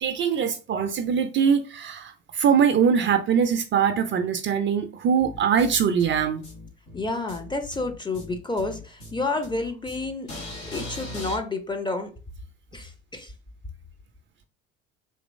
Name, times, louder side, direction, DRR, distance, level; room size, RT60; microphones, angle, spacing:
voice 1, 0.0-6.4, right 7 dB, 30° right, 0.5 m, -22 dB
sound 1, 5.2-11.4, left 1 dB, 80° left, 1.8 m, -39 dB
voice 2, 6.9-10.3 10.7-12.1 12.7-13.3, left 3 dB, 10° left, 0.6 m, -30 dB
3.8 x 2.9 x 2.6 m
figure-of-eight pair, 60°, 38 cm